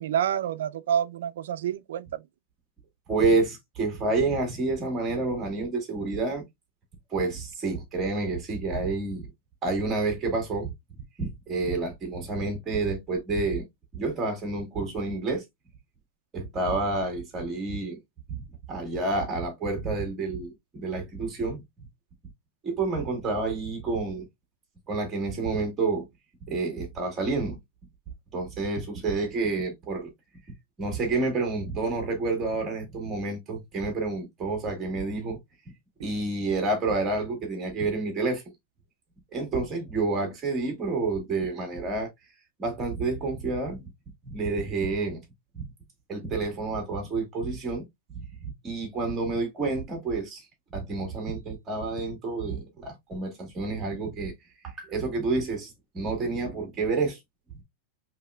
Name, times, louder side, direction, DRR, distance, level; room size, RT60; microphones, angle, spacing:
voice 1, 0.0-2.2, right 9 dB, 85° right, 0.4 m, -28 dB
voice 2, 3.1-6.5 7.1-9.3 9.6-10.7 11.2-13.7 13.9-15.4 16.3-18.0 18.3-21.6 22.6-24.3 24.9-26.1 26.5-27.6 28.3-30.1 30.8-35.4 36.0-38.4 39.3-42.1 42.6-43.8 44.2-45.2 45.5-45.7 46.1-47.8 48.1-50.5 50.7-54.3 54.6-57.2, right 3 dB, 15° right, 1.5 m, -29 dB
4.8 x 3.1 x 2.3 m
supercardioid pair, 170°, 0 cm